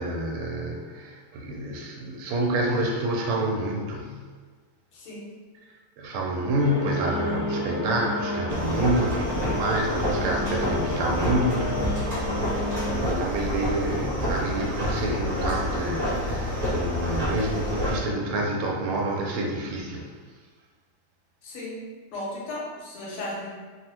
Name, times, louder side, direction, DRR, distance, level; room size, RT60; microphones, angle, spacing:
voice 1, 0.0-4.2 6.0-12.0 12.9-20.0, right 1 dB, 80° right, 0 dB, 1.4 m, -28 dB
voice 2, 4.9-5.3 21.4-21.8 22.1-23.5, left 1 dB, 80° left, -5 dB, 1.7 m, -35 dB
sound 1, 6.6-12.9, left 1 dB, 65° left, 1.2 m, -31 dB
sound 2, 8.5-18.0, equal, 35° right, 0.9 m, -28 dB
3.6 x 2.1 x 2.8 m, 1.4 s
omnidirectional pair, 2.4 m